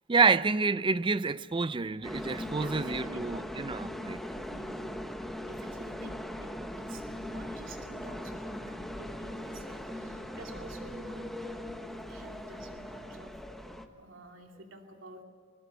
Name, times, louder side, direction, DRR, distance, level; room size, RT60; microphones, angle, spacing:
voice 1, 0.1-4.2, right 4 dB, 25° right, 0.5 m, -28 dB
sound 1, 2.0-13.9, left 1 dB, ahead, 1.1 m, -40 dB
voice 2, 2.5-3.5 4.4-4.9 5.5-11.5 12.1-13.3 14.0-15.2, right 1 dB, 80° right, 2.7 m, -49 dB
20.5 x 20.0 x 6.9 m
head